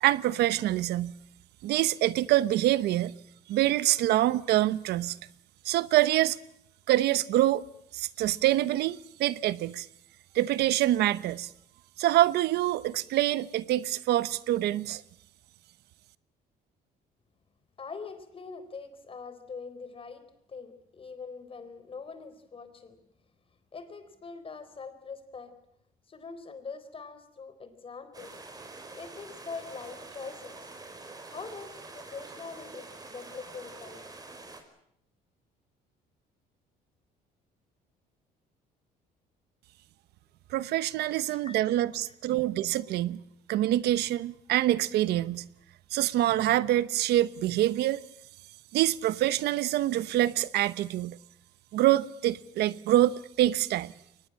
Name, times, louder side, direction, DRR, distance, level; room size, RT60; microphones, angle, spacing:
voice 1, 0.0-1.1 1.6-3.1 3.5-5.2 5.6-6.4 6.9-7.6 7.9-9.9 10.3-11.5 12.0-15.0 40.5-43.2 43.5-45.5 45.9-48.0 48.7-51.2 51.7-53.9, right 14 dB, 75° right, 0.9 m, -25 dB
voice 2, 17.8-20.2 20.5-23.0 23.7-25.5 26.1-28.4 28.9-30.6 31.3-34.1 41.0-42.2, left 5 dB, 35° left, 3.9 m, -43 dB
sound 1, 28.1-34.6, right 3 dB, 20° right, 4.6 m, -46 dB
23.0 x 20.0 x 8.7 m
cardioid pair, 110°, 17 cm